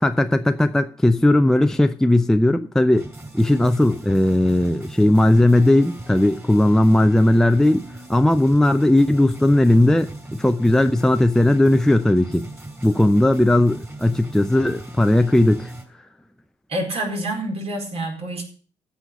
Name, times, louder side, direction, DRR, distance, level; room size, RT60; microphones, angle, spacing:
voice 1, 0.0-3.1 3.3-12.5 12.8-15.7, left 1 dB, 5° left, 0.7 m, -17 dB
sound 1, 2.9-15.8, right 2 dB, 15° right, 5.4 m, -38 dB
voice 2, 16.7-18.4, right 1 dB, 45° right, 4.6 m, -27 dB
15.0 x 5.8 x 8.3 m
figure-of-eight pair, 45°, 14 cm